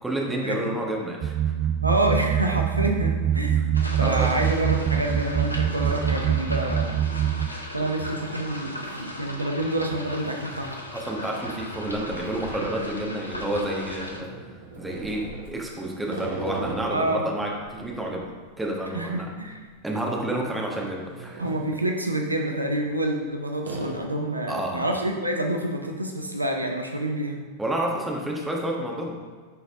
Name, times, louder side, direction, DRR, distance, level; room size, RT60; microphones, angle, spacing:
voice 1, 0.0-1.5 4.0-4.3 10.9-14.3 14.7-18.2 18.6-19.3 19.8-21.4 24.5-24.8 27.6-29.2, right 1 dB, 10° right, -2 dB, 1.3 m, -29 dB
sound 1, 1.2-7.5, right 9 dB, 30° right, 0.4 m, -24 dB
voice 2, 1.8-3.6 4.0-7.1 7.7-10.8 16.9-17.2 18.9-19.7 21.4-27.4, right 1 dB, 85° right, 2 dB, 0.6 m, -27 dB
sound 2, 3.7-14.2, left 1 dB, 85° left, 0.7 m, -37 dB
sound 3, 4.2-4.3 4.8-5.2 5.5-6.6 6.9-7.0 8.0-8.2 8.9-9.0 9.3-9.4 10.4-13.5 14.0-17.1 17.5-19.9 20.1-20.3 20.8-21.8 22.7-23.3 23.6-23.9, right 3 dB, 60° right, 1.0 m, -40 dB
10.0 x 4.0 x 3.6 m, 1.5 s
figure-of-eight pair, 90°, 0 cm